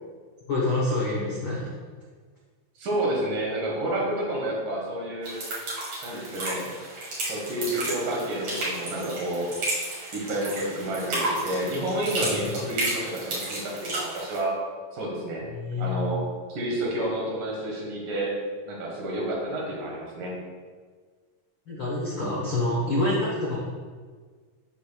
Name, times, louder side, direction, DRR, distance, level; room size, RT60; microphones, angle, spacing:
voice 1, 0.5-1.7 12.2-12.3 15.5-16.1 21.7-23.6, left 2 dB, 70° left, -6 dB, 1.1 m, -27 dB
voice 2, 2.8-5.4 6.0-6.7 7.3-9.5 10.1-14.5 14.9-15.4 15.8-16.2 16.5-18.3 18.7-20.3, right 1 dB, 70° right, -3 dB, 3.1 m, -30 dB
sound 1, 5.2-14.4, right 1 dB, 50° right, 3.0 m, -32 dB
12.5 x 4.6 x 2.3 m, 1.5 s
omnidirectional pair, 4.0 m